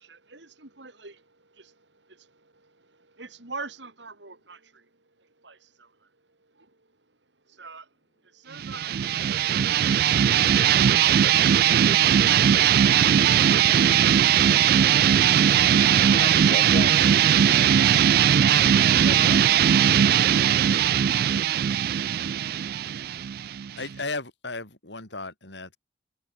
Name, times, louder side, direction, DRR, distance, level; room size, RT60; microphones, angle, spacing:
voice 1, 0.0-7.2 7.4-8.0 8.2-10.0 13.4-14.3, right 4 dB, 75° right, 3.9 m, -45 dB
sound 1, 8.6-24.0, right 9 dB, 55° right, 0.3 m, -19 dB
voice 2, 15.3-15.7 16.0-17.8 18.8-19.7, left 2 dB, 45° left, 6.7 m, -38 dB
voice 3, 23.7-25.8, left 3 dB, 75° left, 6.0 m, -35 dB
head